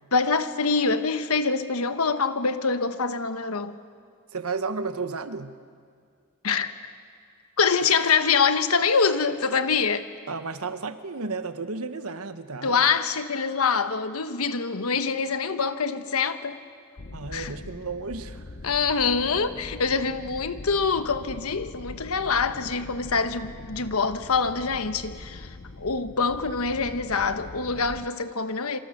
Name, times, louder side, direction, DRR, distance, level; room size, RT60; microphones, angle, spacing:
voice 1, 0.1-3.8 6.4-6.7 7.6-10.1 12.6-16.6 17.3-17.5 18.6-28.8, left 5 dB, 75° left, 1.2 m, -25 dB
voice 2, 4.3-5.6 10.3-12.9 17.1-18.6, right 4 dB, 80° right, 1.2 m, -33 dB
sound 1, 17.0-28.1, left 2 dB, 50° left, 0.8 m, -42 dB
27.0 x 24.5 x 6.7 m
head